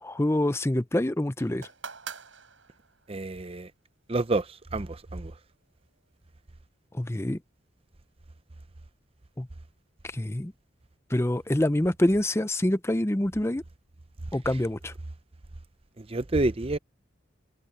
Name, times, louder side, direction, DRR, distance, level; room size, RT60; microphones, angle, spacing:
voice 1, 0.0-1.7 6.9-7.4 9.4-9.5 10.0-10.5 11.1-13.6 14.3-14.9, left 1 dB, 15° left, 0.6 m, -26 dB
sound 1, 1.4-3.1 4.1-4.2, right 6 dB, 75° right, 5.7 m, -43 dB
voice 2, 3.1-3.7 4.1-4.5 4.7-5.3 16.0-16.8, right 2 dB, 30° right, 0.7 m, -28 dB
head